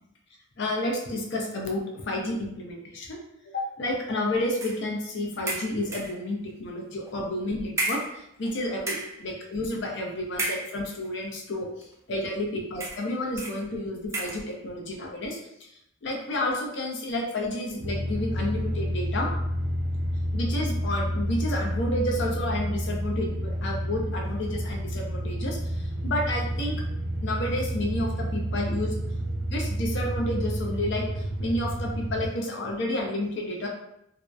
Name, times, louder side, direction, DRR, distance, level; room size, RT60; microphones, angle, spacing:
voice 1, 0.6-3.2 3.5-11.7 12.1-15.4 16.0-19.3 20.3-25.6 26.0-26.8 27.2-28.9 29.5-33.7, left 1 dB, 65° left, 0 dB, 0.5 m, -30 dB
sound 1, 4.6-4.9 5.5-6.2 7.0-7.2 7.8-8.5 8.8-9.2 10.3-11.1 11.8-11.9 12.8-13.1 13.4-13.6 14.1-14.5, right 2 dB, 15° right, 0.3 m, -32 dB
sound 2, 17.8-32.3, equal, 75° right, 0.4 m, -30 dB
2.6 x 2.0 x 2.3 m, 0.80 s
head